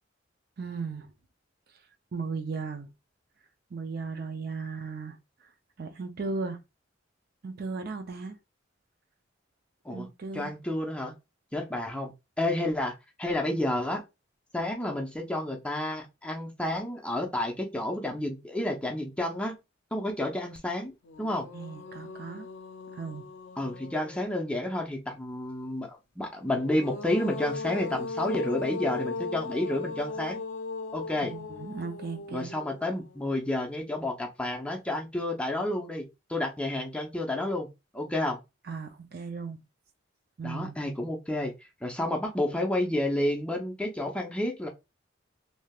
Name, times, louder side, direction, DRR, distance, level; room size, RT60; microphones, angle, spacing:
voice 1, 0.6-1.1 2.1-2.9 3.7-5.2 5.8-6.6 7.4-8.4 9.9-10.5 21.5-22.5 22.9-23.2 31.3-32.5 38.7-39.6 40.4-40.7, right 4 dB, 55° right, 0.5 m, -36 dB
voice 2, 10.3-11.1 11.5-12.9 13.2-14.0 14.5-19.6 19.9-20.9 21.2-21.5 23.6-30.4 30.9-31.3 32.3-37.7 37.9-38.4 40.4-41.5 41.8-44.7, left 1 dB, 5° left, 0.6 m, -30 dB
sound 1, 20.6-20.7 21.0-24.7 26.4-33.6, left 3 dB, 75° left, 0.5 m, -38 dB
3.3 x 2.7 x 2.3 m
head